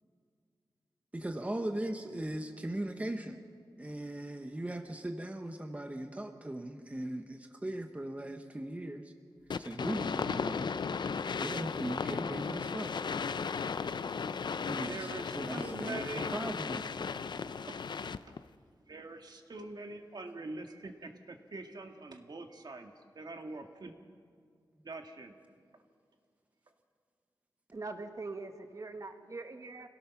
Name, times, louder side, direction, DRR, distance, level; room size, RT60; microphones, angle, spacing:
voice 1, 1.1-3.4 3.8-9.1 9.6-11.1 11.4-13.0 14.7-15.1 15.3-16.9, right 1 dB, 15° right, 5 dB, 1.1 m, -39 dB
sound 1, 9.5-18.4, left 5 dB, 65° left, 0.5 m, -36 dB
voice 2, 14.9-16.3 17.5-17.8 18.9-23.9 24.8-25.3, right 2 dB, 60° right, 4 dB, 1.7 m, -44 dB
voice 3, 27.7-29.9, right 3 dB, 45° right, 6 dB, 1.5 m, -42 dB
26.5 x 17.0 x 5.9 m, 2.1 s
wide cardioid pair, 90°, 8 cm